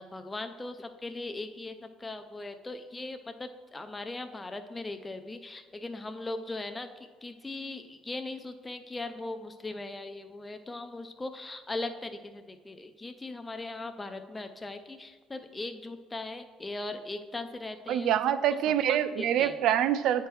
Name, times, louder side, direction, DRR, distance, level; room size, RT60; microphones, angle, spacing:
voice 1, 0.0-18.2 18.5-18.6 19.2-19.5, left 2 dB, 15° left, 7 dB, 0.3 m, -39 dB
voice 2, 17.9-20.3, right 10 dB, 65° right, 13 dB, 0.3 m, -26 dB
9.1 x 4.4 x 3.2 m, 1.4 s
cardioid pair, 130°, 0 cm